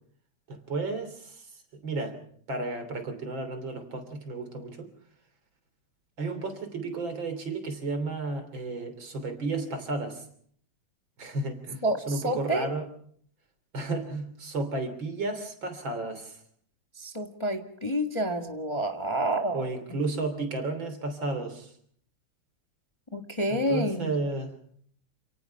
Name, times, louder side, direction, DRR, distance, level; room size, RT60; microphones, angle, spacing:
voice 1, 0.5-1.5 1.7-2.2 2.5-4.9 6.2-10.2 11.2-12.8 13.7-16.4 19.5-21.7 23.5-24.5, right 3 dB, 60° right, 8 dB, 3.9 m, -33 dB
voice 2, 11.8-12.7 17.0-19.7 23.1-24.1, right 1 dB, 15° left, 4 dB, 1.4 m, -29 dB
28.5 x 18.0 x 5.8 m, 0.62 s
omnidirectional pair, 2.4 m